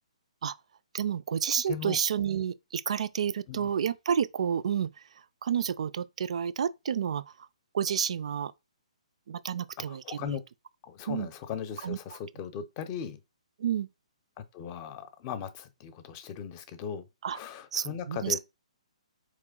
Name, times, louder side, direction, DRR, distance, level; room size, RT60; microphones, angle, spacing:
voice 1, 0.9-4.9 5.4-7.2 7.7-8.5 9.3-10.4 11.1-11.3 11.8-12.0 13.6-13.9 17.2-17.4 17.7-18.4, right 8 dB, 60° right, 0.4 m, -30 dB
voice 2, 9.9-10.4 10.8-13.2 14.4-18.4, left 8 dB, 30° left, 0.6 m, -38 dB
4.2 x 3.1 x 3.7 m
hypercardioid pair, 150°, 4 cm